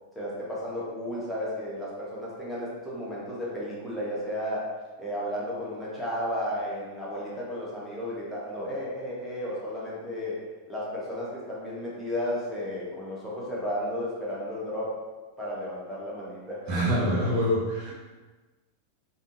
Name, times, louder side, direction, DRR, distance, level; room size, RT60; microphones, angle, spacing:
voice 1, 0.1-4.7 5.0-10.4 10.7-15.0 15.4-16.6 16.9-17.0, equal, 5° left, -8 dB, 1.3 m, -33 dB
voice 2, 16.7-17.9, equal, 35° right, -6 dB, 1.2 m, -25 dB
5.2 x 2.8 x 2.7 m, 1.3 s
figure-of-eight pair, 90°, 0 cm